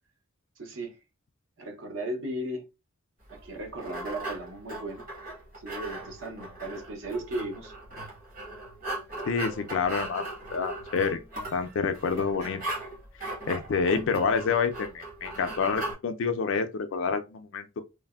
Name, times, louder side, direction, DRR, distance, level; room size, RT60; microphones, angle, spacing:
voice 1, 0.6-1.0 1.6-2.6 3.3-5.1 5.6-7.7, right 1 dB, 65° right, 0.7 m, -36 dB
sound 1, 3.3-15.9, right 2 dB, 40° right, 1.1 m, -38 dB
voice 2, 9.2-11.2 11.5-12.6 13.5-17.8, left 5 dB, 60° left, 0.4 m, -28 dB
3.2 x 2.0 x 2.2 m
head